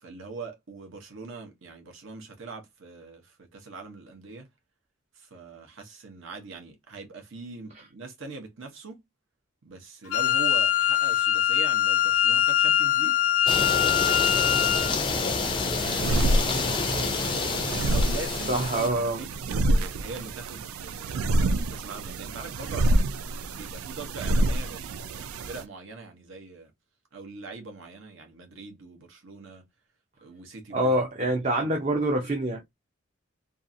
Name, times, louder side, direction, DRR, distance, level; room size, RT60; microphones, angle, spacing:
voice 1, 0.0-4.5 5.2-9.0 9.6-13.2 14.0-17.4 17.9-23.1 23.5-26.7 27.1-29.7 30.2-30.9 31.2-31.9, right 3 dB, 65° right, 0.8 m, -42 dB
Wind instrument woodwind instrument, 10.1-14.9, left 10 dB, 85° left, 0.4 m, -23 dB
sound 1, 13.5-18.9, left 4 dB, 25° left, 0.4 m, -28 dB
sound 2, 15.8-25.6, right 1 dB, 85° right, 0.4 m, -27 dB
voice 2, 18.5-19.2 30.7-32.7, right 1 dB, 30° right, 0.5 m, -26 dB
2.6 x 2.4 x 2.6 m
head